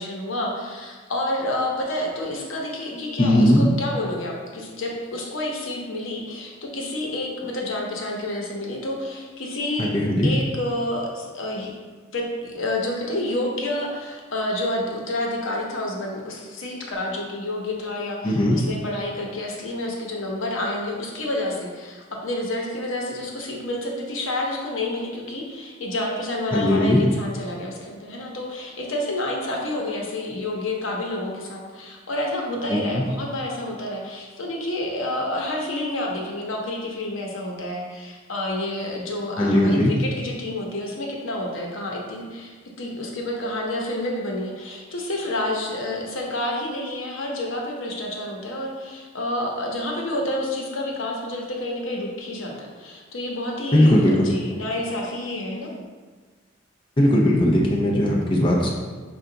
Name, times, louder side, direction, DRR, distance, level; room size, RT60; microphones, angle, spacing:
voice 1, 0.0-9.9 10.2-11.7 12.1-55.8, left 1 dB, 75° left, -1 dB, 0.8 m, -29 dB
voice 2, 3.2-3.7 9.8-10.3 18.2-18.6 26.5-27.0 32.7-33.0 39.4-39.9 53.7-54.3 57.0-58.7, left 1 dB, 25° left, -3 dB, 0.5 m, -18 dB
5.5 x 2.3 x 3.8 m, 1.4 s
head